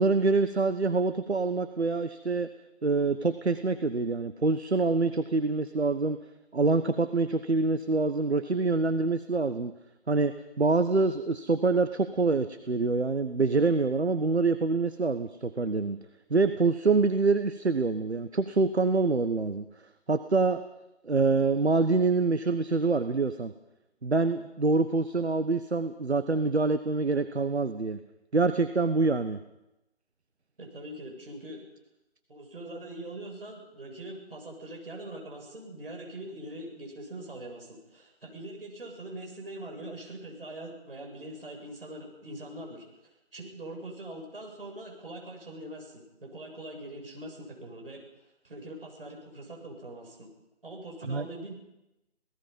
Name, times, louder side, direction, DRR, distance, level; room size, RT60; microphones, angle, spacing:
voice 1, 0.0-2.5 2.8-6.2 6.5-9.7 10.1-16.0 16.3-19.7 20.1-20.6 21.0-23.5 24.0-28.0 28.3-29.4 51.1-51.3, right 3 dB, 70° right, 10 dB, 1.3 m, -26 dB
voice 2, 30.6-31.6 32.3-42.9 43.3-48.0 48.4-50.3 50.6-51.5, right 1 dB, 55° right, 1 dB, 7.3 m, -42 dB
27.5 x 18.0 x 5.5 m, 0.91 s
figure-of-eight pair, 155°, 34 cm